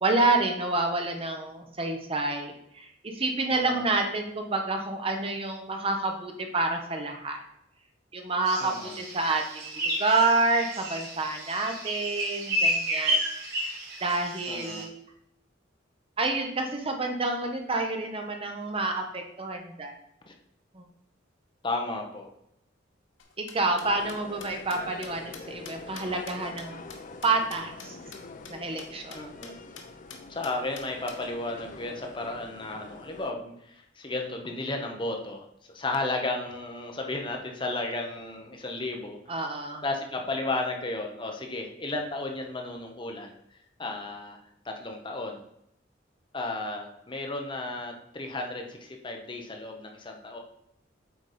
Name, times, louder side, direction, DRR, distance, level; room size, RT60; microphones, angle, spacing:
voice 1, 0.0-2.9 3.1-7.4 8.1-14.9 16.2-19.9 20.7-20.8 23.4-26.8 27.2-28.0 28.5-29.2 39.3-39.8, right 3 dB, 30° right, 4 dB, 0.9 m, -28 dB
voice 2, 3.5-3.8 8.6-9.0 14.5-14.9 20.3-20.4 21.6-22.3 29.1-29.5 30.3-35.4 35.7-39.2 39.8-43.4 43.8-44.4 44.6-45.4 46.3-50.4, left 2 dB, 25° left, 2 dB, 0.9 m, -33 dB
sound 1, 8.5-14.8, equal, 55° right, 2.3 m, -31 dB
sound 2, 23.2-27.9 28.1-28.2 28.4-28.5 28.8-28.9 29.1-29.5 29.8-29.9 30.1-31.2, left 6 dB, 80° left, 1.2 m, -45 dB
sound 3, 23.8-33.3, left 3 dB, 45° left, 0.5 m, -45 dB
8.0 x 4.1 x 5.0 m, 0.77 s
head